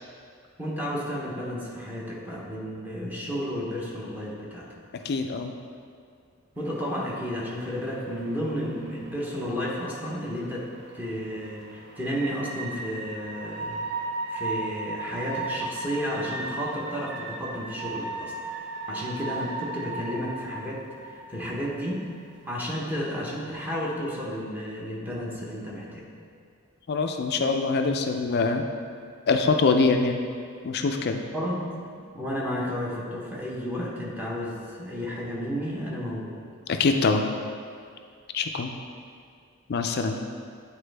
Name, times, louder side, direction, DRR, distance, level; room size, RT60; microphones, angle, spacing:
voice 1, 0.6-4.7 6.6-13.8 14.3-18.3 18.9-22.1 22.4-26.1 31.3-31.7 32.1-36.4, equal, 10° right, -5 dB, 0.9 m, -32 dB
voice 2, 5.0-5.5 26.9-28.7 29.3-30.2 30.6-31.2 36.7-37.2 38.3-38.7 39.7-40.2, left 4 dB, 50° left, 5 dB, 0.4 m, -24 dB
sound 1, 6.6-22.5, right 3 dB, 55° right, 0.7 m, -37 dB
8.6 x 4.2 x 3.3 m, 2.2 s
head